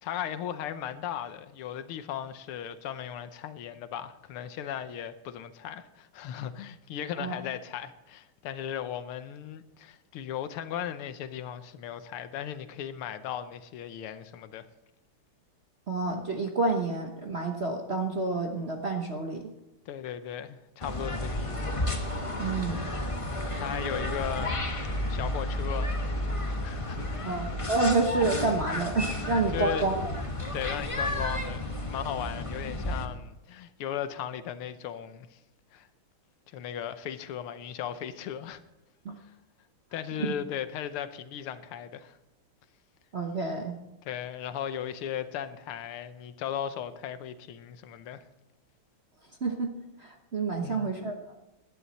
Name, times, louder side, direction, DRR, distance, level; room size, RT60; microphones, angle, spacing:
voice 1, 0.0-14.7 19.9-21.8 23.3-24.5 25.1-25.9 26.6-27.4 29.5-29.9 30.5-31.6 31.9-35.4 35.7-35.9 36.5-38.6 39.2-39.3 39.9-42.2 44.1-48.2 50.6-50.9, left 9 dB, 85° left, 1.7 m, -37 dB
voice 2, 15.9-19.5 22.4-22.8 27.2-30.1 39.0-39.2 40.2-40.3 43.1-43.7 49.4-49.7 50.0-51.3, right 3 dB, 45° right, 0.9 m, -29 dB
sound 1, 20.8-33.0, left 1 dB, 20° left, 0.9 m, -32 dB
18.0 x 11.5 x 4.2 m
omnidirectional pair, 2.4 m